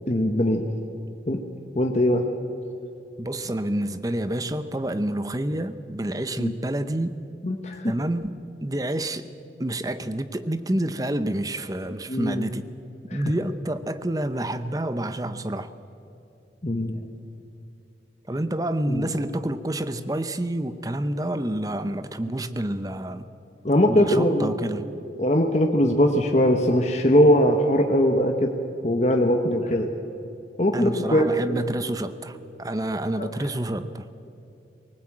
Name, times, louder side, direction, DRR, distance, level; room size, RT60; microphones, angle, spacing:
voice 1, 0.1-0.6 1.3-1.4 1.7-2.2 6.4-6.5 7.4-7.9 12.1-12.4 13.1-13.2 16.6-17.0 18.9-19.1 23.6-24.5 25.2-28.5 28.8-29.9 30.6-31.3 31.8-31.9 33.2-33.3, equal, 40° left, 3 dB, 1.1 m, -21 dB
voice 2, 3.2-7.2 7.8-9.3 9.6-12.7 13.1-15.7 18.3-23.3 23.9-24.9 30.7-34.1, right 1 dB, 20° right, 11 dB, 0.7 m, -28 dB
19.5 x 19.0 x 8.7 m, 2.8 s
head